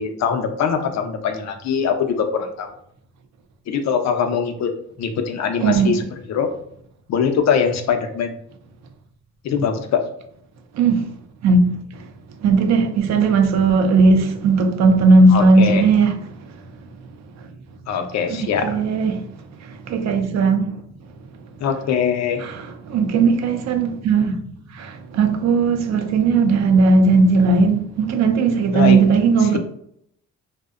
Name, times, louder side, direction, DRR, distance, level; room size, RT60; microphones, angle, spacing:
voice 1, 0.0-2.7 3.7-4.7 5.0-6.0 6.3-6.5 7.1-8.4 9.4-10.0 15.3-15.8 17.9-18.7 21.6-22.4 28.7-29.0, left 7 dB, 65° left, 0.5 m, -22 dB
voice 2, 5.6-6.0 10.7-11.1 11.4-12.1 12.4-16.6 17.4-17.5 18.3-19.3 19.6-20.7 22.4-24.4 24.7-29.6, right 3 dB, 65° right, 0.5 m, -17 dB
2.5 x 2.1 x 2.4 m
cardioid pair, 90°, 30 cm